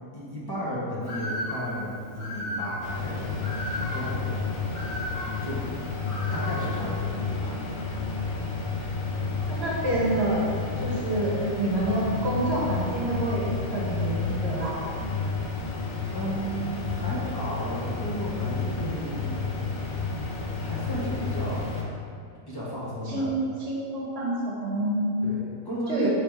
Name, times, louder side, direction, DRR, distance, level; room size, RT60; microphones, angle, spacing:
voice 1, 0.1-3.3 3.6-4.4 5.4-5.6 6.3-7.6 16.1-19.6 20.6-21.8 22.5-23.3 25.2-26.1, equal, 20° left, -8 dB, 0.7 m, -33 dB
Bird, 1.0-7.0, left 1 dB, 55° left, 1.8 m, -36 dB
sound 1, 2.8-21.8, left 4 dB, 90° left, 1.1 m, -31 dB
voice 2, 9.4-10.5 10.8-14.7 23.1-25.2 25.9-26.1, right 1 dB, 55° right, -5 dB, 1.1 m, -28 dB
3.4 x 3.3 x 4.6 m, 2.4 s
omnidirectional pair, 1.3 m